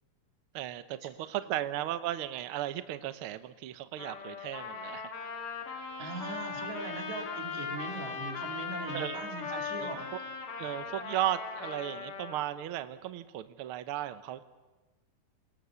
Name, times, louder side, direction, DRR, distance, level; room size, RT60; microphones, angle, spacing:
voice 1, 0.5-5.1 8.9-9.2 9.5-10.2 10.6-14.4, right 13 dB, 85° right, 12 dB, 1.2 m, -36 dB
Trumpet, 4.0-12.4, left 5 dB, 80° left, 4.0 m, -39 dB
voice 2, 6.0-10.1, right 4 dB, 60° right, 3 dB, 3.7 m, -40 dB
28.5 x 19.0 x 7.0 m, 1.2 s
omnidirectional pair, 3.7 m